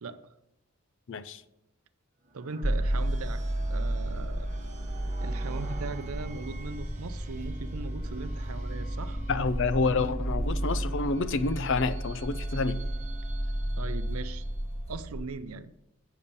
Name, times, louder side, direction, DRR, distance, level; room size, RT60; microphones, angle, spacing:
voice 1, 1.1-1.4 9.3-12.8, left 4 dB, 60° left, 14 dB, 0.5 m, -28 dB
sound 1, 2.2-14.8, right 1 dB, 35° right, 1.0 m, -48 dB
voice 2, 2.3-3.4 3.7-4.5 5.2-9.2 13.8-14.4 14.9-15.7, right 4 dB, 80° right, 11 dB, 0.6 m, -39 dB
sound 2, 2.6-15.2, right 1 dB, 30° left, 1.1 m, -32 dB
8.4 x 7.1 x 5.4 m, 0.87 s
head